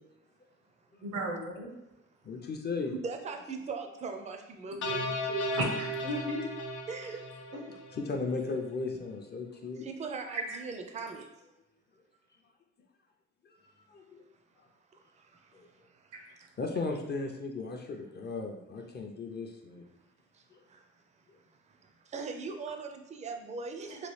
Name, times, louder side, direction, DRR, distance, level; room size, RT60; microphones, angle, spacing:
voice 1, 1.0-1.7 5.5-6.4 7.5-7.8 10.3-10.6, right 1 dB, 85° right, 1 dB, 0.8 m, -34 dB
voice 2, 2.2-2.9 7.9-9.9 13.6-14.2 15.5-15.6 16.6-19.8, left 3 dB, 35° left, 3 dB, 0.5 m, -36 dB
voice 3, 3.0-5.4 6.9-7.2 9.8-11.2 14.9-16.6 20.3-20.9 21.7-24.1, right 4 dB, 25° right, 5 dB, 0.4 m, -41 dB
sound 1, 4.8-8.1, left 1 dB, 75° left, 0.6 m, -35 dB
3.0 x 2.3 x 3.1 m, 0.92 s
cardioid pair, 90°, 30 cm